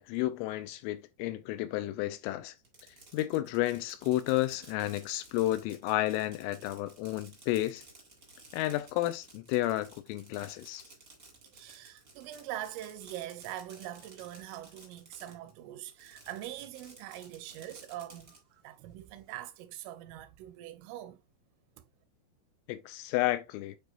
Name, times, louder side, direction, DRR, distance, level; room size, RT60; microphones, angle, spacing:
voice 1, 0.0-2.6 3.1-7.8 8.5-10.8 22.7-23.8, left 16 dB, 85° left, 3.0 m, -31 dB
Fireworks, 2.6-15.5 15.9-18.4, right 2 dB, 50° right, 0.9 m, -55 dB
voice 2, 11.5-21.2 21.8-21.9, right 13 dB, 85° right, 3.0 m, -43 dB
9.0 x 4.8 x 2.5 m
omnidirectional pair, 5.9 m